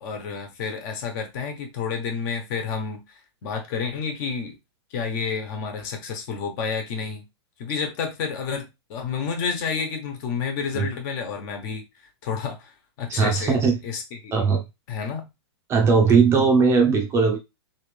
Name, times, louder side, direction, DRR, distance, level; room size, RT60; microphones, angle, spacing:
voice 1, 0.0-4.5 4.9-7.2 7.6-11.8 12.2-13.5 13.8-14.3 14.9-15.3, left 6 dB, 45° left, 1.4 m, -30 dB
voice 2, 13.1-13.8 14.3-14.6 15.7-17.4, right 5 dB, 20° right, 0.7 m, -19 dB
3.6 x 3.4 x 3.4 m
hypercardioid pair, 145°, 14 cm